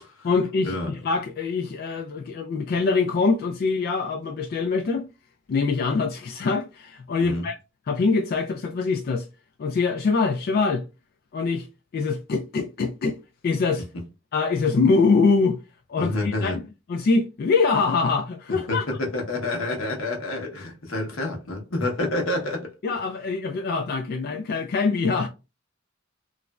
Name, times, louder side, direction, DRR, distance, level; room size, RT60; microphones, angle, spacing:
voice 1, 0.2-5.1 5.5-7.6 7.9-9.3 9.6-10.8 11.3-11.7 11.9-13.2 13.4-13.8 14.3-15.6 15.9-16.6 16.9-18.8 22.8-25.3, left 4 dB, 50° left, 0.3 m, -24 dB
voice 2, 16.0-16.6 18.7-23.0, left 2 dB, 80° left, 0.9 m, -28 dB
3.0 x 2.5 x 2.2 m
head